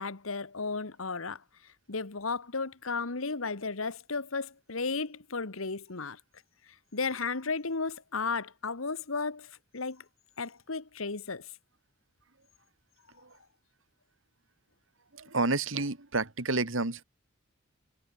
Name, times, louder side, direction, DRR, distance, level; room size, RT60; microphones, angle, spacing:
voice 1, 0.0-6.2 6.9-10.0 10.4-11.5, left 4 dB, 80° left, 1.5 m, -34 dB
voice 2, 15.1-17.0, right 3 dB, 65° right, 2.3 m, -30 dB
head